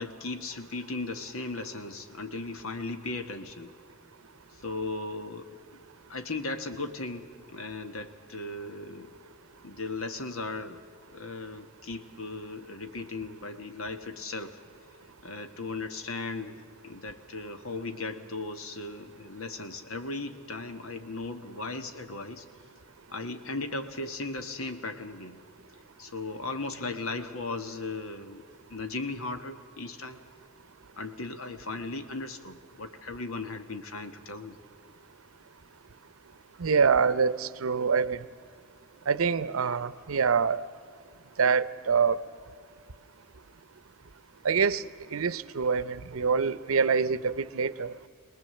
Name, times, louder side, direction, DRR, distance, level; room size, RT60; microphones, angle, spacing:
voice 1, 0.0-3.7 4.6-5.6 6.1-7.3 7.5-9.1 9.6-10.8 11.1-14.6 15.2-16.6 16.8-22.4 23.1-25.4 26.0-28.4 28.7-30.2 31.0-34.5, left 3 dB, 85° left, 8 dB, 1.6 m, -37 dB
voice 2, 36.6-38.2 39.1-40.6 41.4-42.2 44.4-44.8 45.1-47.9, right 5 dB, 80° right, 17 dB, 0.7 m, -25 dB
23.0 x 19.5 x 7.8 m, 2.2 s
head